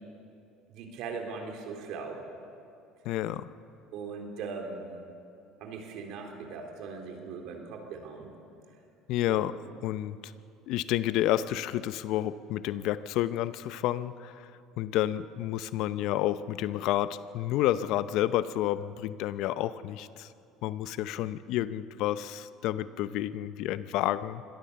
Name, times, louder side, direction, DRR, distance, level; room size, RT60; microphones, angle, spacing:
voice 1, 0.7-2.2 3.9-4.9 5.6-8.3 9.2-9.5, right 5 dB, 65° right, 2 dB, 3.8 m, -39 dB
voice 2, 3.0-3.5 9.1-9.6 9.8-10.3 10.7-14.5 14.8-20.3 20.6-24.4, left 13 dB, 70° left, 14 dB, 0.7 m, -30 dB
24.0 x 17.5 x 7.0 m, 2.6 s
supercardioid pair, 90°, 0 cm